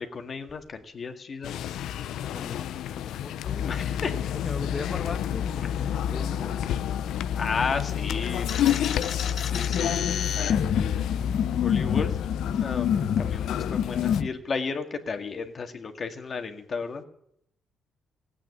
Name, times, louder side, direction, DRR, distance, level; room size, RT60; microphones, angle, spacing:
voice 1, 0.0-1.6 3.6-4.1 7.4-8.5 9.4-10.0 11.5-12.1 12.6-17.0, left 5 dB, 45° left, 6 dB, 1.9 m, -33 dB
sound 1, 1.4-14.2, left 10 dB, 80° left, 0.6 m, -29 dB
voice 2, 2.2-3.7 4.4-6.7, left 3 dB, 25° left, 4 dB, 1.0 m, -38 dB
sound 2, 8.5-14.3, left 8 dB, 60° left, 1.0 m, -28 dB
16.0 x 8.8 x 9.9 m, 0.73 s
cardioid pair, 90°, 0 cm